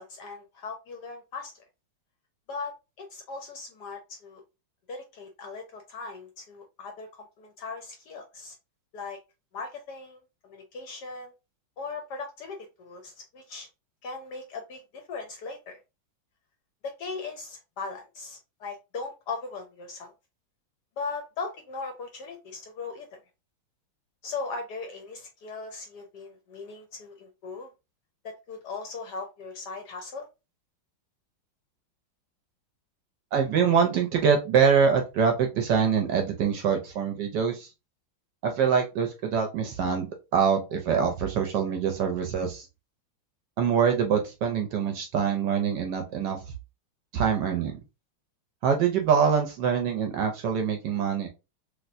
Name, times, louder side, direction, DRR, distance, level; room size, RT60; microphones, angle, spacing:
voice 1, 0.0-1.5 2.5-4.4 4.9-8.5 8.9-9.2 9.5-11.3 11.8-13.7 14.0-15.8 16.8-20.1 21.0-23.2 24.2-27.7 28.2-30.3, left 4 dB, 70° left, 4 dB, 1.0 m, -39 dB
voice 2, 33.3-37.7 38.4-42.7 43.6-46.4 47.1-47.7 48.6-51.3, right 7 dB, 70° right, 4 dB, 1.1 m, -24 dB
3.2 x 3.0 x 2.5 m, 0.27 s
omnidirectional pair, 2.3 m